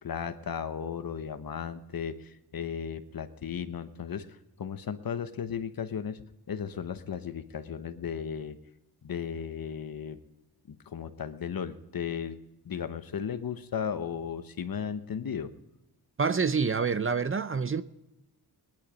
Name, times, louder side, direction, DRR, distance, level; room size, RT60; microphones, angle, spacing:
voice 1, 0.0-4.3 4.6-8.6 9.0-10.2 10.7-12.4 12.6-15.5, left 7 dB, 60° left, 1.1 m, -35 dB
voice 2, 16.2-17.8, right 5 dB, 35° right, 0.6 m, -27 dB
19.0 x 10.5 x 5.2 m
cardioid pair, 75°, 39 cm